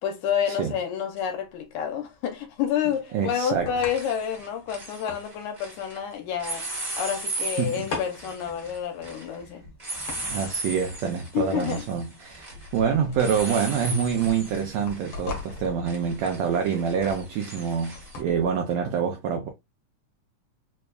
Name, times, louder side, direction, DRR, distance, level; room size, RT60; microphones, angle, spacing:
voice 1, 0.0-9.6 11.3-11.8, left 8 dB, 75° left, 2.0 m, -29 dB
sound 1, 1.2-1.3 3.0-3.3 3.6-6.0 6.4-18.2, right 2 dB, 30° right, 0.7 m, -37 dB
sound 2, 1.4-18.5, left 4 dB, 60° left, 1.5 m, -42 dB
voice 2, 3.1-3.7 7.6-7.9 10.2-19.5, right 7 dB, 90° right, 1.5 m, -26 dB
5.0 x 2.3 x 2.2 m
omnidirectional pair, 3.7 m